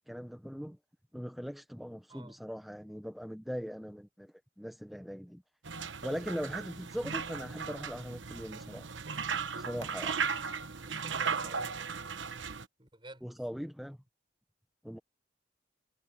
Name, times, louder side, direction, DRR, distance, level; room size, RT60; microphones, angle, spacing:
voice 1, 0.1-0.8 1.1-5.4 6.0-8.9 9.5-10.2 13.2-14.0 14.8-15.0, equal, ahead, 0.7 m, -40 dB
sound 1, 5.6-12.6, right 6 dB, 85° right, 1.1 m, -36 dB
voice 2, 10.8-12.0 12.8-13.2, right 2 dB, 25° right, 6.4 m, -52 dB
head